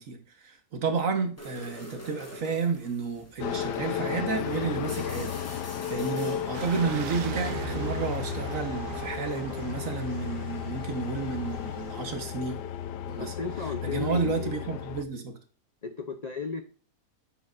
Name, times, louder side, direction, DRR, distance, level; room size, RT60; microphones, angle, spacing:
voice 1, 0.0-12.6 13.1-13.3 13.6-15.3, right 5 dB, 55° right, 1.6 m, -31 dB
sound 1, 1.4-7.0, equal, 10° left, 1.3 m, -46 dB
sound 2, 3.4-15.0, left 9 dB, 85° left, 1.2 m, -34 dB
sound 3, 6.5-12.0, right 12 dB, 85° right, 1.3 m, -40 dB
voice 2, 13.2-14.7 15.8-16.6, left 4 dB, 50° left, 0.5 m, -34 dB
8.7 x 6.7 x 2.5 m
omnidirectional pair, 1.7 m